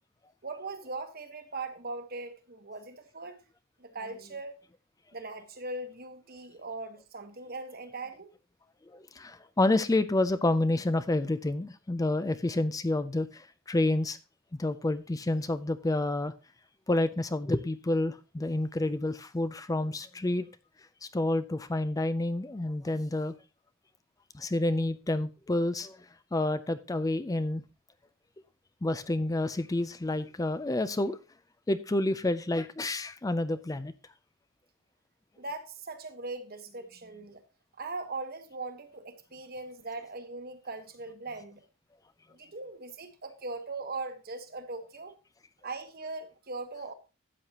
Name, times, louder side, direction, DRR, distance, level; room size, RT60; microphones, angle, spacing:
voice 1, 0.4-3.4 3.8-4.6 5.1-8.3 35.4-37.4 37.8-41.6 42.3-45.2 45.6-46.9, right 3 dB, 45° right, 8 dB, 1.2 m, -40 dB
voice 2, 8.9-14.2 14.5-16.3 16.9-20.5 21.0-23.3 24.3-26.0 26.3-27.6 28.8-31.2 31.7-33.9, left 2 dB, 15° left, 12 dB, 0.4 m, -29 dB
12.5 x 8.3 x 2.9 m, 0.30 s
head